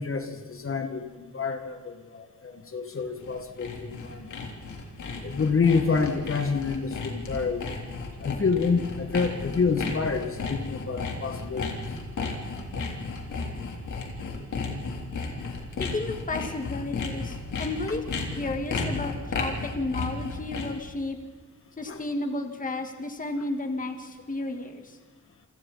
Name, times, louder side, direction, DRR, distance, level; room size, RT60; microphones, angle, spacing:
voice 1, 0.0-4.3 5.2-7.8 8.2-11.8 21.9-22.0, left 5 dB, 45° left, 6 dB, 2.0 m, -28 dB
Sawing, 3.0-20.9, left 4 dB, 80° left, 3.6 m, -34 dB
voice 2, 15.8-18.0 18.4-21.2 21.8-25.0, left 2 dB, 25° left, 5 dB, 1.9 m, -32 dB
29.5 x 25.0 x 4.2 m, 1.4 s
wide cardioid pair, 115°, 30 cm